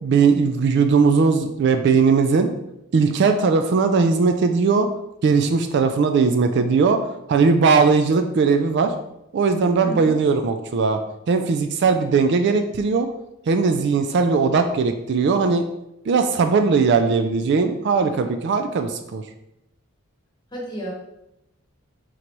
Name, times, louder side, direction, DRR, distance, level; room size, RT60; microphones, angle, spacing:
voice 1, 0.0-2.5 2.9-4.9 5.2-8.9 9.3-11.0 11.3-13.1 13.5-15.6 16.1-19.2, right 5 dB, 50° right, 7 dB, 0.3 m, -19 dB
voice 2, 9.8-10.2 20.5-20.9, right 1 dB, 20° left, -3 dB, 1.2 m, -31 dB
3.9 x 3.0 x 4.5 m, 0.85 s
head